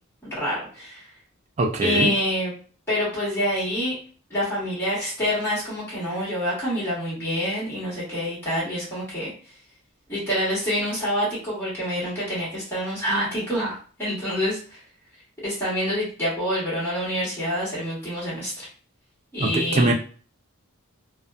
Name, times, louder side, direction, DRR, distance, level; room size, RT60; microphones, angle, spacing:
voice 1, 0.2-1.1 1.8-2.5 2.9-4.0 4.3-9.3 10.1-14.8 15.4-18.7 19.3-19.9, equal, 10° left, -9 dB, 1.2 m, -27 dB
voice 2, 1.6-2.1 19.4-19.9, right 2 dB, 30° right, 3 dB, 0.4 m, -22 dB
2.5 x 2.1 x 2.3 m, 0.41 s
head